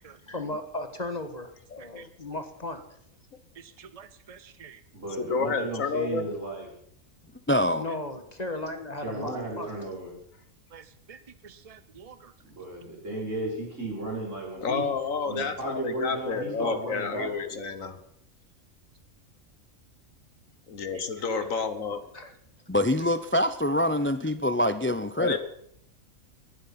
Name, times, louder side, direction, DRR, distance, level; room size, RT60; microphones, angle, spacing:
voice 1, 0.2-2.8 7.8-9.7 22.1-22.3, left 2 dB, 30° left, 8 dB, 1.6 m, -36 dB
voice 2, 1.7-2.1 5.2-6.2 14.6-18.0 20.7-22.1 25.2-25.4, left 5 dB, 75° left, 11 dB, 1.8 m, -30 dB
voice 3, 3.6-4.8 10.7-10.8 11.1-11.2 11.4-12.2, right 7 dB, 45° right, 13 dB, 0.5 m, -48 dB
voice 4, 4.9-6.7 9.0-10.1 12.6-14.9 15.3-18.0 20.8-20.9, right 2 dB, 65° right, -2 dB, 6.1 m, -35 dB
voice 5, 7.5-7.8 22.7-25.4, left 1 dB, 15° left, 11 dB, 0.5 m, -25 dB
19.5 x 11.5 x 5.9 m, 0.69 s
omnidirectional pair, 1.4 m